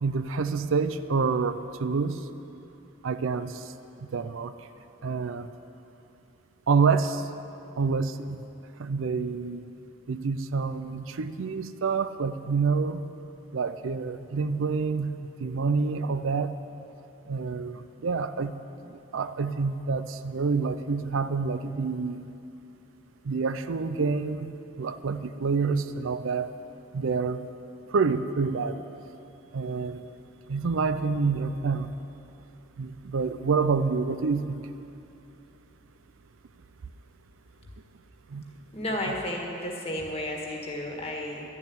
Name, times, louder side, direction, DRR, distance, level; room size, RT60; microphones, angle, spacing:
voice 1, 0.0-2.2 3.0-3.6 4.1-4.5 5.0-5.5 6.7-7.2 7.8-8.4 8.8-9.6 10.1-13.0 13.5-15.1 15.4-16.5 17.3-18.5 18.9-22.3 23.3-24.5 24.8-26.5 26.9-27.4 27.9-28.8 29.5-30.0 30.5-31.9 32.8-34.6 38.3-38.4, right 4 dB, 75° right, 11 dB, 0.5 m, -27 dB
voice 2, 38.7-41.4, left 1 dB, 30° left, 0 dB, 1.8 m, -32 dB
12.0 x 7.5 x 9.6 m, 2.9 s
head